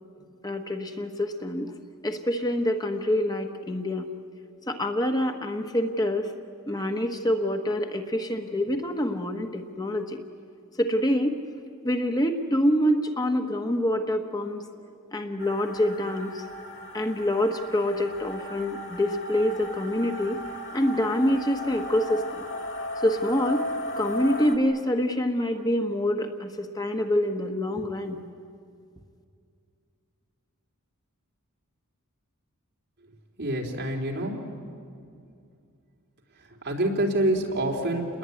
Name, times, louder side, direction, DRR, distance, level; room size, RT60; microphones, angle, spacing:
voice 1, 0.4-1.7 2.0-4.1 4.7-6.3 6.7-10.2 10.8-11.4 11.8-14.6 15.1-16.4 16.9-20.4 20.7-22.2 23.0-23.6 24.0-28.2, left 1 dB, 20° left, 5 dB, 1.2 m, -26 dB
sound 1, 15.4-24.6, left 1 dB, 60° left, 3.1 m, -36 dB
voice 2, 33.4-34.3 36.6-38.2, right 1 dB, 55° right, 0 dB, 3.8 m, -26 dB
28.5 x 21.0 x 9.7 m, 2.4 s
head